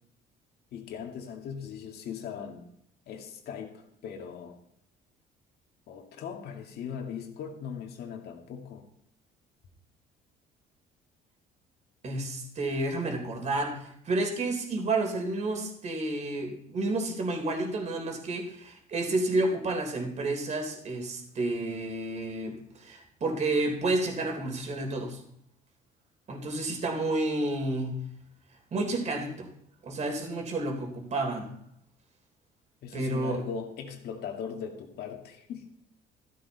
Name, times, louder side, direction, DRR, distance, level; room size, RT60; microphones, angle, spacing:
voice 1, 0.7-2.6 3.1-4.6 5.9-8.8 32.8-35.7, left 7 dB, 70° left, 3 dB, 2.2 m, -39 dB
voice 2, 12.0-25.2 26.3-28.0 28.7-29.5 29.8-31.5 32.9-33.5, right 2 dB, 45° right, 3 dB, 3.4 m, -30 dB
14.5 x 12.0 x 4.1 m, 0.73 s
cardioid pair, 110°, 17 cm